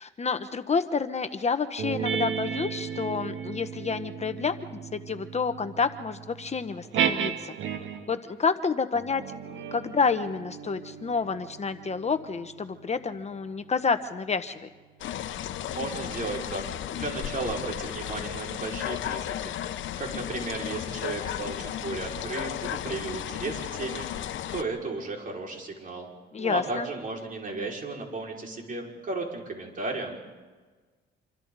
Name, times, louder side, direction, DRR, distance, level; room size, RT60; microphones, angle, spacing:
voice 1, 0.0-4.5 4.9-7.5 8.1-14.7 26.3-26.9, left 5 dB, 35° left, 9 dB, 1.0 m, -29 dB
sound 1, 1.8-8.2 8.9-13.8, right 7 dB, 80° right, 1.8 m, -34 dB
sound 2, 15.0-24.6, left 11 dB, 75° left, 0.9 m, -34 dB
voice 2, 15.7-16.6 16.9-26.1 26.4-30.1, right 3 dB, 45° right, -1 dB, 5.5 m, -34 dB
27.5 x 24.5 x 4.1 m, 1.3 s
cardioid pair, 90°, 20 cm